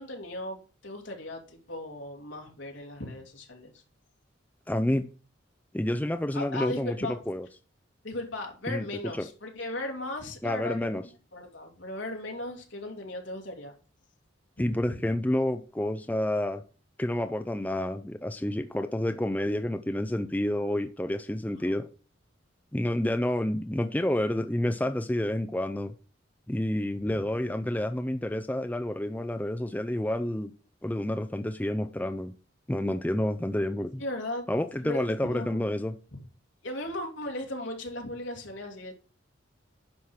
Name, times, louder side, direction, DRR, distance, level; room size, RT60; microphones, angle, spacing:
voice 1, 0.0-3.8 6.3-7.2 8.0-13.7 14.6-15.0 21.5-21.8 34.0-34.5 34.8-35.8 36.1-36.2 36.6-38.9, left 1 dB, 70° left, 1 dB, 2.6 m, -37 dB
voice 2, 4.7-5.1 5.7-7.0 7.3-7.5 8.7-8.9 9.2-9.3 10.4-11.0 14.6-16.6 17.0-21.9 22.7-25.9 26.5-30.5 30.8-32.3 32.7-34.0 34.5-35.9, left 1 dB, 10° left, 7 dB, 0.4 m, -29 dB
10.5 x 5.8 x 4.8 m, 0.37 s
head